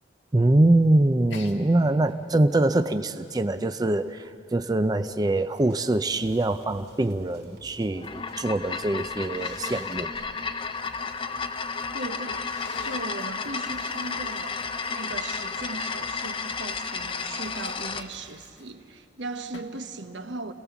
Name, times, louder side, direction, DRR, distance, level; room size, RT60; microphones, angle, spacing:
voice 1, 0.3-10.1, right 2 dB, 20° right, 0.5 m, -23 dB
Sneeze, 1.3-1.6 2.1-4.4 5.1-7.6 7.8-8.5 9.3-10.0 12.4-13.1 16.7-18.9 19.5-19.9, left 4 dB, 85° left, 1.7 m, -48 dB
sound 1, 5.5-18.2, right 1 dB, 60° right, 2.5 m, -54 dB
sound 2, 7.9-18.1, left 5 dB, 30° left, 0.7 m, -32 dB
voice 2, 11.9-20.5, right 2 dB, 80° right, 1.2 m, -38 dB
29.5 x 18.0 x 7.1 m
head